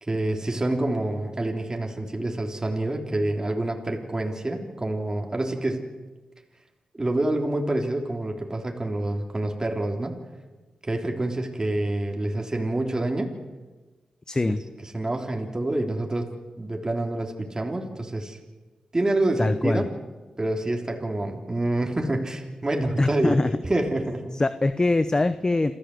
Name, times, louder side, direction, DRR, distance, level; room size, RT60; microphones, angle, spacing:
voice 1, 0.0-5.9 6.9-10.2 10.8-13.4 14.9-16.3 16.6-18.4 18.9-19.9 20.4-23.4 23.6-24.3, right 1 dB, 30° right, 2 dB, 3.7 m, -27 dB
voice 2, 14.3-14.6 19.4-19.8 23.0-23.5 24.3-25.7, left 2 dB, 30° left, 12 dB, 1.0 m, -23 dB
28.0 x 13.5 x 8.0 m, 1.2 s
supercardioid pair, 45°, 2 cm